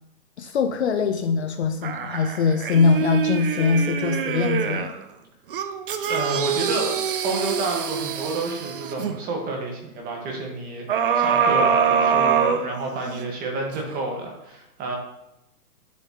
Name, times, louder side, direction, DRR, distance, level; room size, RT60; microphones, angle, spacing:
voice 1, 0.4-5.0, left 5 dB, 45° left, 8 dB, 0.5 m, -22 dB
sound 1, 1.8-5.0 5.5-9.2 10.9-13.2 13.7-13.8, right 6 dB, 35° right, 0.5 m, -24 dB
voice 2, 6.1-6.9 7.2-10.9 11.1-15.0, right 2 dB, 20° right, 1 dB, 1.5 m, -30 dB
8.8 x 7.2 x 2.9 m, 0.86 s
hypercardioid pair, 145°, 47 cm